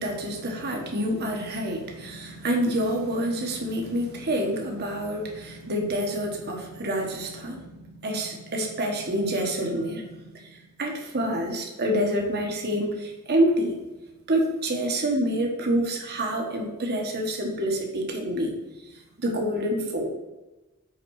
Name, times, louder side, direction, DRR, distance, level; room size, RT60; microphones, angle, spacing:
voice 1, 0.0-13.7 14.3-18.5 19.2-20.1, right 1 dB, 50° right, 1 dB, 1.3 m, -27 dB
5.9 x 5.0 x 4.7 m, 1.1 s
head